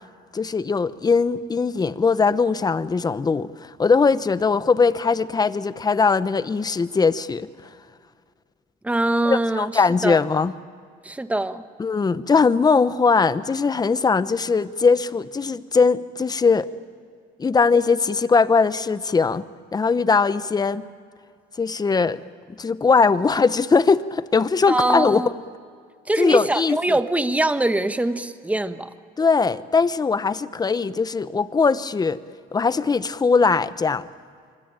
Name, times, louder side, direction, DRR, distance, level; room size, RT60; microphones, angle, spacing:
voice 1, 0.3-7.5 9.2-10.5 11.8-16.7 17.4-19.4 19.7-20.8 21.6-22.2 22.5-25.2 26.2-27.0 29.2-32.2 32.5-34.0, left 4 dB, 25° left, 15 dB, 0.9 m, -20 dB
voice 2, 8.8-10.2 11.0-11.6 24.7-25.3 26.1-28.9, right 2 dB, 10° right, 10 dB, 1.3 m, -23 dB
25.5 x 24.5 x 8.9 m, 2.2 s
cardioid pair, 110°, 17 cm